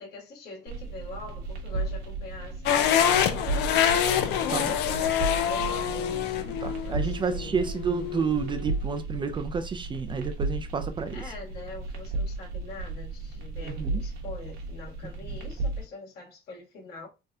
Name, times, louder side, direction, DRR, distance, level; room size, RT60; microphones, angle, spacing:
voice 1, 0.0-3.8 4.4-7.6 11.1-17.1, left 2 dB, 65° left, 1.6 m, -43 dB
sound 1, 0.7-15.8, right 3 dB, 75° right, 0.9 m, -34 dB
sound 2, 2.7-8.7, left 9 dB, 90° left, 0.4 m, -26 dB
voice 2, 6.6-11.2 13.6-14.0, right 5 dB, 30° right, 0.3 m, -30 dB
3.3 x 2.3 x 2.6 m
cardioid pair, 110°, 17 cm